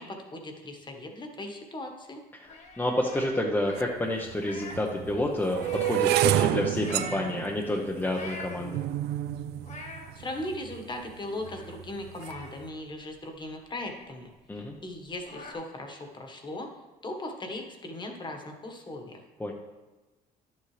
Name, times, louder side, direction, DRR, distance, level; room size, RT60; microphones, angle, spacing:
voice 1, 0.0-2.2 10.1-16.7 17.0-19.2, left 1 dB, 25° left, 4 dB, 1.5 m, -38 dB
sound 1, 2.4-5.0 5.3-6.2 6.7-7.3 7.9-8.9 9.3-10.1 10.6-10.7 10.9-11.8 12.2-13.7 14.1-14.2 14.5-14.6 14.9-15.5, left 2 dB, 45° left, 1.8 m, -44 dB
voice 2, 2.8-8.8 14.5-14.8 19.4-19.5, left 1 dB, 10° left, -1 dB, 0.9 m, -29 dB
sound 2, 3.8-3.9 4.6-10.8 11.4-11.8 12.1-12.5, right 12 dB, 80° right, 0.4 m, -29 dB
11.0 x 7.6 x 3.3 m, 1.2 s
cardioid pair, 110°, 17 cm